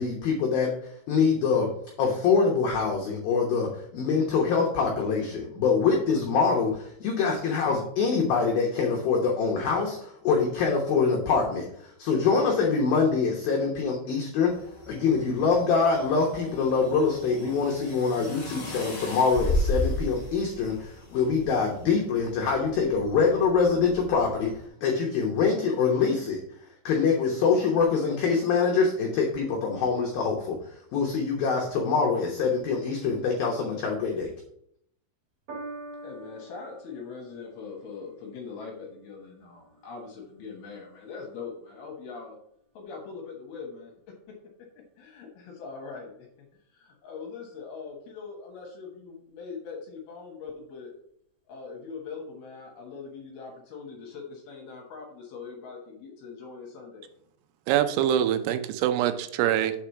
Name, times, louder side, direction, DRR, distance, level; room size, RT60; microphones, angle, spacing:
voice 1, 0.0-1.7 2.0-11.7 12.0-14.5 14.9-24.6 24.8-26.4 26.8-30.6 30.9-34.3, left 5 dB, 80° left, 0 dB, 2.1 m, -24 dB
sound 1, 14.4-24.6, left 1 dB, 50° left, 1.0 m, -35 dB
Piano, 35.5-42.1 42.9-43.0, right 2 dB, 50° right, 2.0 m, -47 dB
voice 2, 36.0-42.4 42.7-43.9 45.0-50.9 51.5-57.1, left 5 dB, 65° left, 0 dB, 2.6 m, -42 dB
voice 3, 57.7-59.7, right 11 dB, 85° right, 9 dB, 3.2 m, -24 dB
7.4 x 4.9 x 5.8 m, 0.70 s
omnidirectional pair, 5.9 m